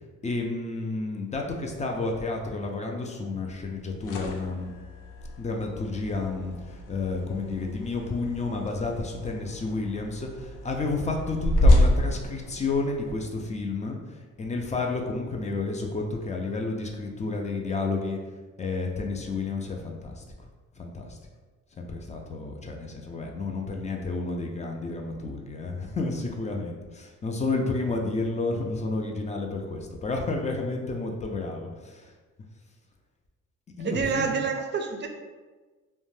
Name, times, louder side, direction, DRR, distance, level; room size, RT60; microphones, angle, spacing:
voice 1, 0.2-4.7 5.4-14.0 14.4-18.2 18.6-20.2 20.8-21.2 21.8-32.1 33.8-34.4, left 3 dB, 25° left, 1 dB, 0.4 m, -31 dB
sound 1, 3.7-13.1, left 1 dB, 85° left, 0.5 m, -28 dB
voice 2, 33.8-35.1, right 6 dB, 35° right, 4 dB, 0.4 m, -27 dB
2.5 x 2.1 x 3.1 m, 1.3 s
cardioid pair, 90°, 30 cm